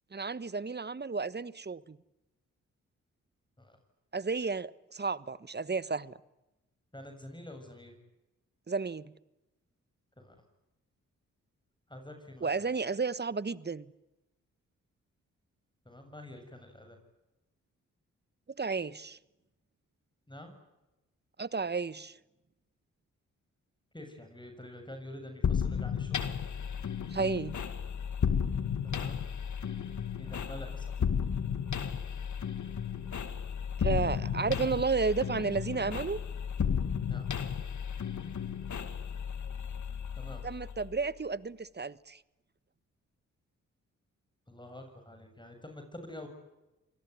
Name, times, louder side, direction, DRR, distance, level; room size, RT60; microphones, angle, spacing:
voice 1, 0.1-2.0 4.1-6.2 8.7-9.1 12.4-13.9 18.6-19.2 21.4-22.2 27.1-27.6 33.8-36.2 40.4-42.2, right 4 dB, 30° right, 1.3 m, -32 dB
voice 2, 6.9-8.0 10.2-10.4 11.9-12.6 15.9-17.0 20.3-20.5 23.9-26.3 28.8-29.2 30.2-30.9 37.1-37.3 40.2-40.4 44.5-46.3, left 1 dB, 15° left, 7.3 m, -47 dB
sound 1, 25.4-41.1, left 7 dB, 65° left, 2.2 m, -34 dB
27.0 x 20.0 x 9.6 m
supercardioid pair, 45°, 32 cm